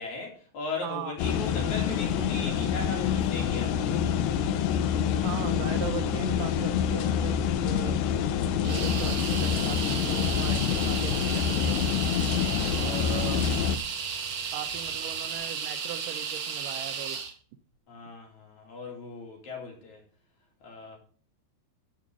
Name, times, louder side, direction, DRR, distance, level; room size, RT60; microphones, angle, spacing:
voice 1, 0.0-3.9 12.4-13.2 17.9-20.0 20.6-21.0, left 3 dB, 50° left, 3.7 m, -38 dB
voice 2, 0.8-1.2 5.1-7.4 7.7-8.0 8.6-11.8 12.8-13.5 14.5-17.2, right 10 dB, 80° right, 1.9 m, -39 dB
sound 1, 1.2-13.8, left 8 dB, 75° left, 2.4 m, -27 dB
sound 2, 4.9-15.5, equal, 10° right, 3.1 m, -52 dB
sound 3, 8.6-17.3, right 6 dB, 55° right, 1.9 m, -34 dB
13.5 x 5.1 x 6.1 m
omnidirectional pair, 4.7 m